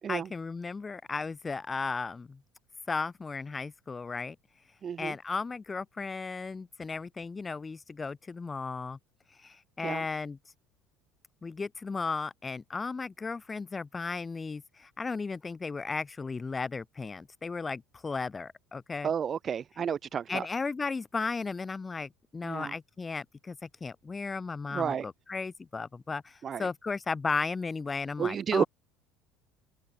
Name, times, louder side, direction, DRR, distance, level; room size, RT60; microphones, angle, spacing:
voice 1, 0.1-2.4 2.9-4.4 5.0-9.0 9.4-10.4 11.4-19.1 20.3-28.7, left 4 dB, 20° left, 5.4 m, -35 dB
voice 2, 4.8-5.2 9.8-10.0 19.0-20.4 22.4-22.7 24.7-25.0 26.4-26.7 28.2-28.6, right 7 dB, 30° right, 3.3 m, -31 dB
open air
cardioid pair, 125°, 0 cm